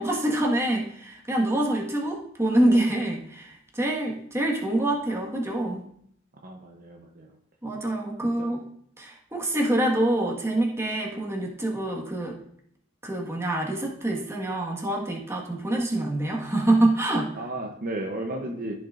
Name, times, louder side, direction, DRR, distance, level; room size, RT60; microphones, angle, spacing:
voice 1, 0.0-5.8 7.6-8.6 9.0-12.4 13.0-17.3, right 1 dB, 15° right, -1 dB, 1.6 m, -26 dB
voice 2, 6.4-7.4 8.4-8.5 17.3-18.7, right 1 dB, 45° right, 2 dB, 0.8 m, -34 dB
14.5 x 6.1 x 2.6 m, 0.67 s
head